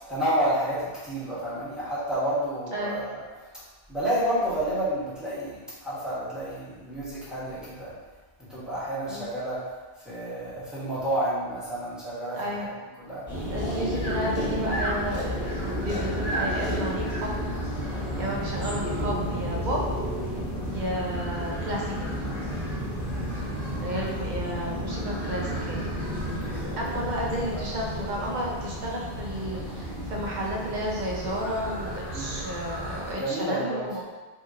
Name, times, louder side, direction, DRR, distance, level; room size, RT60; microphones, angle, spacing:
voice 1, 0.1-3.2 3.9-7.9 8.4-9.6 10.0-12.7 13.0-13.2 18.1-18.4 23.1-23.4 26.3-26.7 27.3-27.6 32.1-32.4 33.1-33.9, right 1 dB, ahead, -11 dB, 1.2 m, -30 dB
voice 2, 12.3-12.7 13.5-17.3 18.2-19.9 20.6-22.1 23.8-25.8 26.8-34.1, equal, 50° right, -3 dB, 0.8 m, -32 dB
sound 1, 13.3-33.1, equal, 25° right, 1.4 m, -32 dB
Breathing, 13.6-17.3, right 1 dB, 75° left, 1.1 m, -33 dB
2.9 x 2.7 x 3.6 m, 1.3 s
omnidirectional pair, 1.0 m